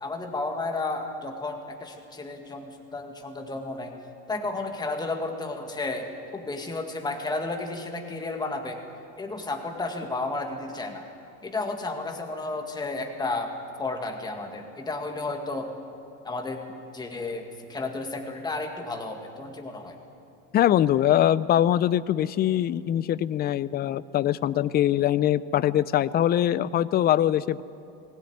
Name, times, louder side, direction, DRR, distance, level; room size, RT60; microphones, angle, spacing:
voice 1, 0.0-3.9 4.3-8.8 9.2-11.0 11.4-13.5 13.8-15.7 16.2-16.6 16.9-20.0, left 3 dB, 10° left, 3 dB, 2.0 m, -32 dB
voice 2, 20.5-27.6, left 11 dB, 25° left, 18 dB, 0.4 m, -23 dB
21.5 x 17.5 x 9.4 m, 2.9 s
supercardioid pair, 135°, 38 cm